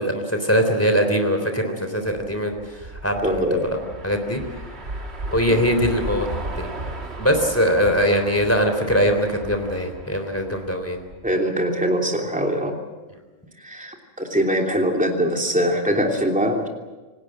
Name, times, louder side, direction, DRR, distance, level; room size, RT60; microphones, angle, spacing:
voice 1, 0.0-2.6 3.0-3.7 4.0-4.4 5.3-6.3 6.6-6.7 7.2-11.0, equal, 10° left, 5 dB, 3.6 m, -21 dB
sound 1, 2.0-11.3, right 2 dB, 55° right, 2.4 m, -35 dB
voice 2, 3.2-3.6 5.5-5.6 11.2-12.7 13.6-16.7, equal, 5° right, 1 dB, 3.1 m, -22 dB
27.5 x 19.0 x 7.7 m, 1.2 s
omnidirectional pair, 1.3 m